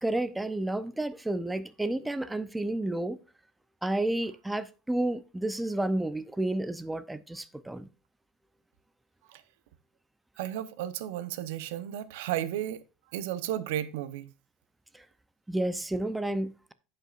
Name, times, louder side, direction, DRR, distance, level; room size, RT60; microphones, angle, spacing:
voice 1, 0.0-3.2 3.8-7.9 15.5-16.7, right 1 dB, 5° right, 0.6 m, -31 dB
voice 2, 10.4-12.8 13.1-14.3, right 12 dB, 80° right, 0.8 m, -33 dB
15.5 x 5.5 x 2.5 m
supercardioid pair, 145°, 0 cm